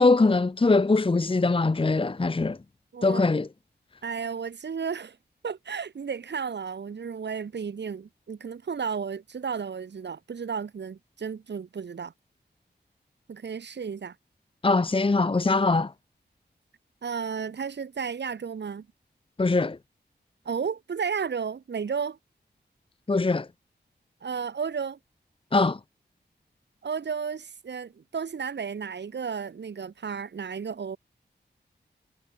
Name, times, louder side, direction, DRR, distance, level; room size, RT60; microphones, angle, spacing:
voice 1, 0.0-2.6 3.0-3.5 14.6-15.9 19.4-19.8 23.1-23.5 25.5-25.8, left 3 dB, 30° left, 1.0 m, -22 dB
voice 2, 4.0-5.2 5.4-12.1 13.3-14.1 17.0-18.8 20.4-22.2 24.2-25.0 26.8-31.0, right 6 dB, 75° right, 1.4 m, -33 dB
wide cardioid pair, 105°, 18 cm